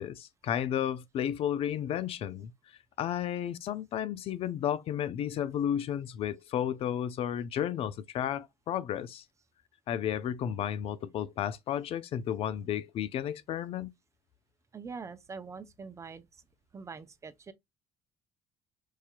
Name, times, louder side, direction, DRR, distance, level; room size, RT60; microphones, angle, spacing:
voice 1, 0.0-2.5 3.0-9.2 9.9-13.9, left 10 dB, 60° left, 0.5 m, -32 dB
voice 2, 14.7-16.3 16.7-17.5, right 5 dB, 25° right, 0.6 m, -43 dB
4.7 x 2.8 x 2.2 m
supercardioid pair, 70°, 11 cm